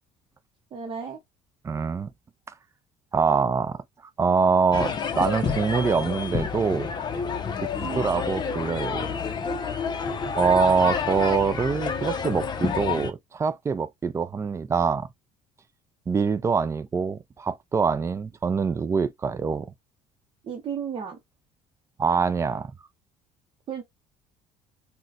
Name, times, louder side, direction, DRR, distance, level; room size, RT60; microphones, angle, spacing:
voice 1, 0.7-1.2 7.8-8.1 20.4-21.2 23.7-23.8, right 7 dB, 40° right, 0.8 m, -33 dB
voice 2, 1.6-2.1 3.1-3.8 4.2-6.9 7.5-7.7 8.0-9.2 10.4-15.1 16.1-19.7 22.0-22.7, right 5 dB, 20° right, 0.4 m, -24 dB
sound 1, 4.7-13.1, left 6 dB, 30° left, 0.6 m, -29 dB
3.7 x 2.2 x 2.3 m
cardioid pair, 115°, 14 cm